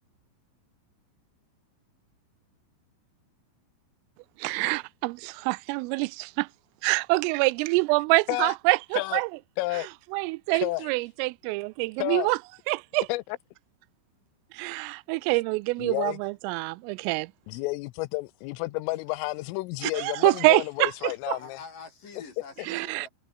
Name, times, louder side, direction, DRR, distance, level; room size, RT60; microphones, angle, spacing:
voice 1, 4.4-6.5 6.8-9.3 10.1-12.4 12.7-13.1 14.5-17.3 19.8-21.4 22.7-23.1, right 24 dB, 85° right, 3.2 m, -26 dB
voice 2, 9.6-9.9 10.5-10.9 12.0-12.3 13.1-13.4 15.8-16.2 17.5-21.6, left 20 dB, 90° left, 3.4 m, -31 dB
voice 3, 21.4-23.1, left 5 dB, 45° left, 6.2 m, -45 dB
omnidirectional pair, 5.8 m